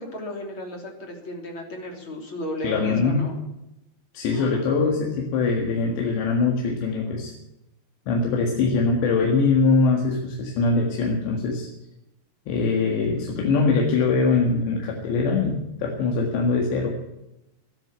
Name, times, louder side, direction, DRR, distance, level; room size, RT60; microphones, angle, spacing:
voice 1, 0.0-3.3 4.3-4.6 12.6-13.4, left 1 dB, 30° left, 2 dB, 3.4 m, -35 dB
voice 2, 2.6-3.2 4.1-7.3 8.1-11.7 12.5-17.0, left 4 dB, 90° left, 0 dB, 4.1 m, -22 dB
13.0 x 11.5 x 9.3 m, 0.89 s
omnidirectional pair, 4.9 m